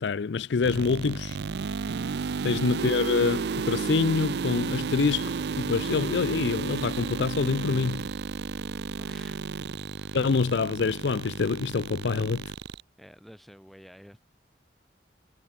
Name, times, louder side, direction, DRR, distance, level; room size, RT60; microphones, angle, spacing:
voice 1, 0.0-1.4 2.4-8.1 10.1-12.5, left 5 dB, 75° left, 0.5 m, -26 dB
sound 1, 0.6-12.8, right 5 dB, 65° right, 0.5 m, -32 dB
voice 2, 8.9-9.4 10.0-10.2 13.0-14.2, equal, ahead, 7.7 m, -51 dB
head